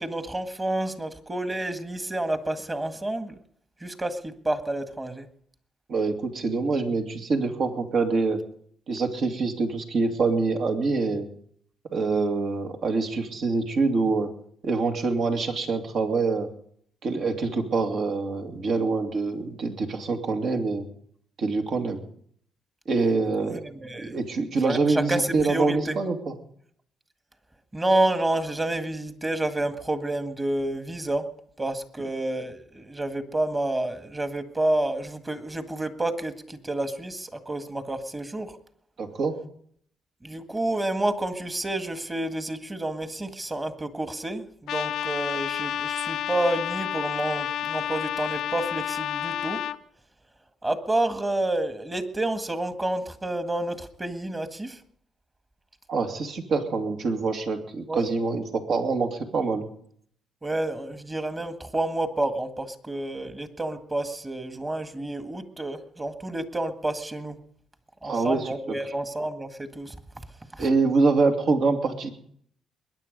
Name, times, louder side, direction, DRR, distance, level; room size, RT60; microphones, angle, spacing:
voice 1, 0.0-3.3 3.8-5.3 23.5-24.2 24.6-26.0 27.7-31.3 31.6-38.5 40.2-49.6 50.6-54.8 57.9-58.0 60.4-67.4 68.0-70.0 70.5-70.7, right 1 dB, 20° right, 8 dB, 1.8 m, -29 dB
voice 2, 5.9-8.4 8.9-11.3 11.9-14.3 14.6-16.5 17.0-20.9 21.4-22.0 22.9-23.6 24.0-26.3 39.0-39.3 55.9-59.7 68.0-68.5 70.6-72.1, right 3 dB, 60° right, 4 dB, 2.5 m, -25 dB
Trumpet, 44.7-49.8, left 10 dB, 80° left, 0.7 m, -30 dB
22.0 x 10.0 x 5.3 m, 0.63 s
cardioid pair, 90°, 0 cm